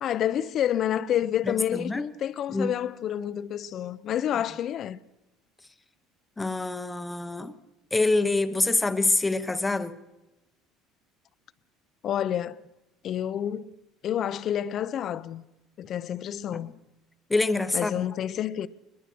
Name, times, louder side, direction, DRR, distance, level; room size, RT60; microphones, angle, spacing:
voice 1, 0.0-5.0 12.0-12.6 13.0-13.7 14.0-15.4 15.8-16.7 17.7-18.7, left 10 dB, 40° left, 0.7 m, -29 dB
voice 2, 1.4-2.1 2.5-2.7 6.4-7.5 7.9-10.0 17.3-18.1, left 2 dB, 10° left, 0.9 m, -26 dB
21.5 x 21.5 x 6.2 m
cardioid pair, 155°, 0 cm